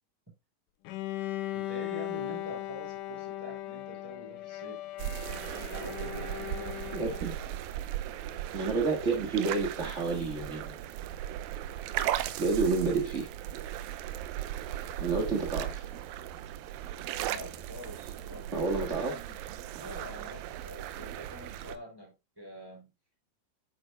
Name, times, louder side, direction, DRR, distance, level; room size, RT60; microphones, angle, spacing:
Bowed string instrument, 0.9-7.6, left 14 dB, 75° left, 2.1 m, -38 dB
voice 1, 1.5-4.8 5.5-6.9 17.2-19.4 19.7-22.9, left 1 dB, 5° right, 0 dB, 5.7 m, -46 dB
sound 1, 5.0-21.8, right 12 dB, 85° right, 2.5 m, -37 dB
voice 2, 6.9-7.4 8.5-10.8 12.4-13.3 15.0-15.9 18.5-19.1, right 4 dB, 55° right, 3 dB, 0.8 m, -29 dB
9.9 x 9.3 x 2.2 m, 0.24 s
omnidirectional pair, 4.2 m